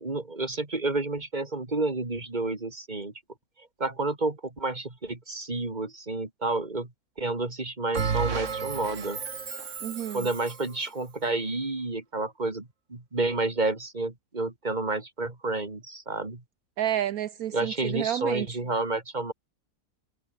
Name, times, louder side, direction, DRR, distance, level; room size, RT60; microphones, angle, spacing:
voice 1, 0.0-3.1 3.6-6.9 7.2-9.2 10.1-16.4 17.5-19.3, right 2 dB, 30° right, 3.0 m, -30 dB
Bell, 7.9-10.7, right 6 dB, 55° right, 1.9 m, -32 dB
voice 2, 9.8-10.3 16.8-18.5, right 11 dB, 75° right, 1.3 m, -30 dB
omnidirectional pair, 1.6 m